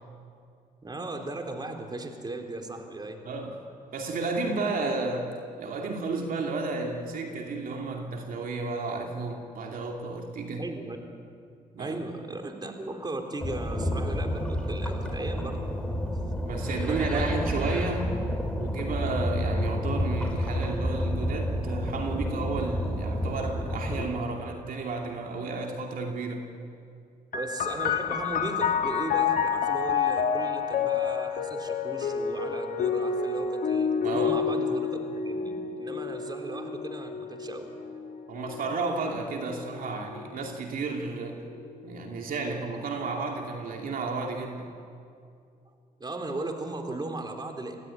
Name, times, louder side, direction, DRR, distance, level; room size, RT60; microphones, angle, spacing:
voice 1, 0.8-3.2 10.6-11.0 11.8-15.7 16.8-17.3 27.3-37.7 46.0-47.8, right 2 dB, 25° right, 4 dB, 3.7 m, -37 dB
voice 2, 3.2-10.7 11.7-11.9 16.4-18.1 18.5-26.5 34.0-34.4 38.3-41.4 41.8-44.7, right 3 dB, 65° right, 2 dB, 2.7 m, -32 dB
sound 1, 13.4-24.0, equal, 5° left, 4.8 m, -30 dB
sound 2, 27.3-40.6 41.4-42.2, left 6 dB, 65° left, 1.6 m, -29 dB
25.0 x 16.0 x 9.8 m, 2.4 s
supercardioid pair, 70°, 16 cm